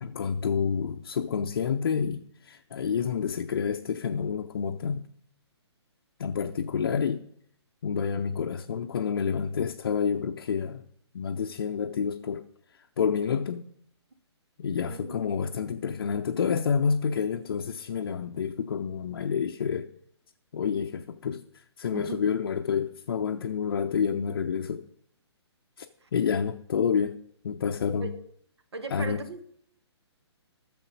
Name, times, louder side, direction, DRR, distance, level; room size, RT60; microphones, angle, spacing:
voice 1, 0.0-5.1 6.2-7.3 7.8-10.8 11.1-12.4 13.0-13.7 14.6-19.9 20.5-21.4 21.8-24.8 25.8-25.9 26.1-27.2 27.4-28.1 28.9-29.2, left 6 dB, 55° left, 0.6 m, -28 dB
voice 2, 14.9-15.2 21.9-22.3 26.0-26.1 28.0-28.3 28.7-29.4, right 4 dB, 65° right, 1.3 m, -38 dB
13.5 x 7.0 x 5.2 m
figure-of-eight pair, 130°, 15 cm